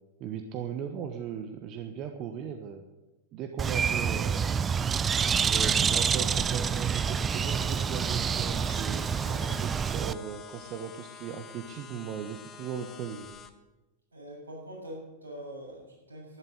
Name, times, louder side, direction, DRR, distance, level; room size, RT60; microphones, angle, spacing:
voice 1, 0.2-2.8 3.3-4.6 5.4-9.0 9.6-13.3, right 7 dB, 35° right, 6 dB, 1.2 m, -38 dB
Bird, 3.6-10.1, right 7 dB, 20° right, 0.5 m, -27 dB
sound 1, 6.3-13.5, left 6 dB, 25° left, 1.5 m, -47 dB
sound 2, 8.3-9.9 11.8-11.9 13.0-13.4, left 4 dB, 65° left, 3.3 m, -56 dB
voice 2, 9.2-9.6 14.1-16.4, equal, 75° right, -2 dB, 7.2 m, -45 dB
12.0 x 12.0 x 8.2 m, 1.1 s
figure-of-eight pair, 90°, 0 cm